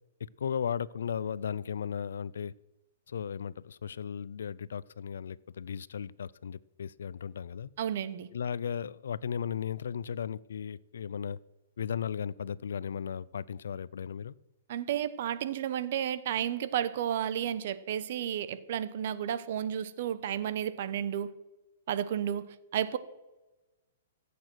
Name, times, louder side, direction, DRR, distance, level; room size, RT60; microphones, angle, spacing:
voice 1, 0.2-2.5 3.1-7.7 8.3-11.4 11.8-14.3, left 7 dB, 85° left, 0.4 m, -36 dB
voice 2, 7.8-8.3 14.7-21.3 21.9-23.0, right 10 dB, 55° right, 1.0 m, -32 dB
15.0 x 8.5 x 6.3 m
hypercardioid pair, 150°, 0 cm